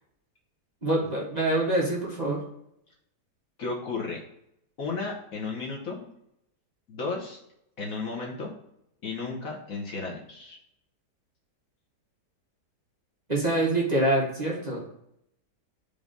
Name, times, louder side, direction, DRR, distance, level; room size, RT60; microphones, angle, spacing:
voice 1, 0.8-2.4 13.3-14.8, right 1 dB, 25° right, -4 dB, 1.4 m, -25 dB
voice 2, 3.6-4.2 4.8-6.1 6.9-7.4 7.8-8.5 9.0-10.6, left 4 dB, 55° left, -2 dB, 1.5 m, -33 dB
5.2 x 3.5 x 5.2 m, 0.78 s
omnidirectional pair, 1.8 m